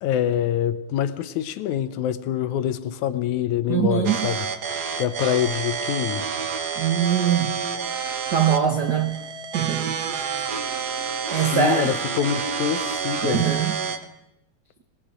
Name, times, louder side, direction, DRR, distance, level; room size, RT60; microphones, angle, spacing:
voice 1, 0.0-4.5 5.0-6.3 11.5-13.4, left 10 dB, 80° left, 2.3 m, -25 dB
voice 2, 3.7-4.3 6.8-7.6 8.3-9.2 9.5-10.4 11.3-12.0 13.2-13.8, right 8 dB, 85° right, 0.9 m, -23 dB
sound 1, 4.0-14.0, right 6 dB, 55° right, 1.1 m, -29 dB
26.0 x 20.0 x 5.1 m
omnidirectional pair, 3.4 m